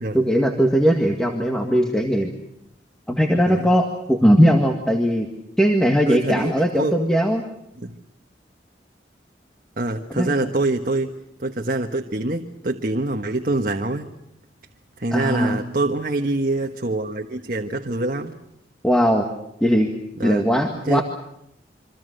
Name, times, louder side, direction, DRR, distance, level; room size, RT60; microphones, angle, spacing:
voice 1, 0.1-2.3 3.1-5.3 5.6-7.4 10.1-10.5 15.1-15.6 18.8-19.3 19.6-19.9 20.2-21.0, equal, 5° left, 2 dB, 1.9 m, -19 dB
voice 2, 6.1-6.9 7.8-8.0 9.8-11.1 11.4-14.1 15.0-18.4 20.2-20.4 20.7-21.0, right 2 dB, 50° right, 3 dB, 1.4 m, -25 dB
27.0 x 25.5 x 6.7 m, 0.79 s
head